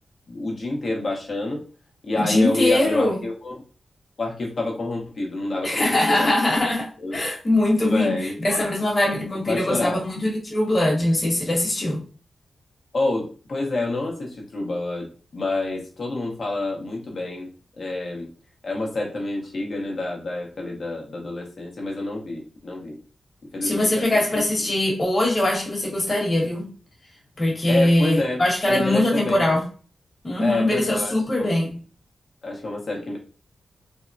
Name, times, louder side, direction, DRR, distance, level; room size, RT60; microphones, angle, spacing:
voice 1, 0.3-1.6 2.0-3.6 4.2-5.8 6.1-6.3 7.0-7.2 7.8-8.6 9.5-10.0 12.9-15.1 15.3-17.5 17.8-18.3 18.6-23.0 23.5-24.2 27.7-28.4 28.7-29.5 30.4-31.5 32.4-33.2, left 2 dB, 55° left, 0.9 m, -28 dB
voice 2, 2.1-3.2 5.6-12.0 23.6-26.7 27.4-29.6 30.2-31.8, left 1 dB, 35° left, 1.2 m, -22 dB
3.5 x 2.1 x 2.5 m
wide cardioid pair, 95°, 0 cm